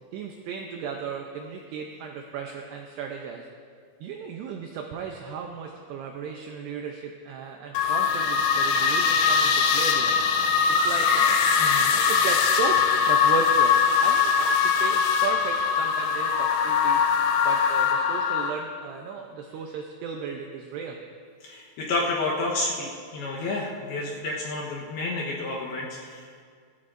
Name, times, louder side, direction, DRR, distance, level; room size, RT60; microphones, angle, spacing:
voice 1, 0.1-3.5 4.0-10.2 10.7-17.0 17.4-21.0, right 6 dB, 85° right, 2 dB, 2.4 m, -35 dB
sound 1, 7.7-18.5, left 6 dB, 90° left, 2.5 m, -22 dB
voice 2, 11.6-11.9 21.4-26.4, left 2 dB, 70° left, -4 dB, 2.5 m, -30 dB
18.0 x 13.5 x 2.6 m, 2.1 s
omnidirectional pair, 5.7 m